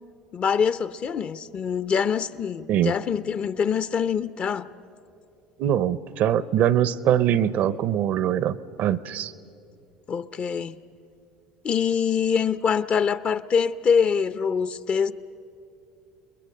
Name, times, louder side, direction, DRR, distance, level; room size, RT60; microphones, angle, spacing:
voice 1, 0.3-4.7 10.1-10.8 11.6-15.1, left 6 dB, 40° left, 0.8 m, -24 dB
voice 2, 5.6-9.3, right 10 dB, 60° right, 0.7 m, -23 dB
30.0 x 21.5 x 6.7 m
hypercardioid pair, 75°, 3 cm